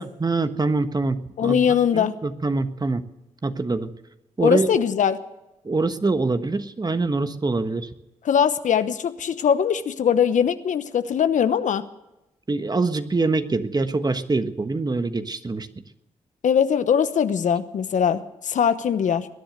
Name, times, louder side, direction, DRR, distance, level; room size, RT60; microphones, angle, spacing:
voice 1, 0.0-3.0 3.4-3.9 4.4-4.8 5.6-7.9 12.5-15.7, right 3 dB, 30° right, 10 dB, 1.4 m, -24 dB
voice 2, 1.4-2.1 4.4-5.2 8.2-11.8 16.4-19.3, left 8 dB, 70° left, 12 dB, 1.0 m, -21 dB
21.0 x 10.5 x 6.6 m, 0.96 s
supercardioid pair, 50°, 13 cm